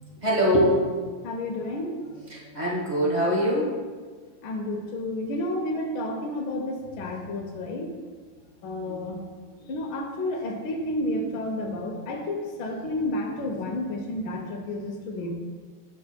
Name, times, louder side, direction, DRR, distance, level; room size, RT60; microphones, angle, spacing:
voice 1, 0.2-0.9 2.3-3.7 8.9-9.3 15.2-15.3, equal, 25° right, -4 dB, 1.0 m, -24 dB
voice 2, 1.2-2.3 4.4-7.9 8.6-9.2 9.6-15.3, left 1 dB, 75° left, 0 dB, 1.4 m, -31 dB
11.0 x 4.3 x 2.2 m, 1.5 s
omnidirectional pair, 2.2 m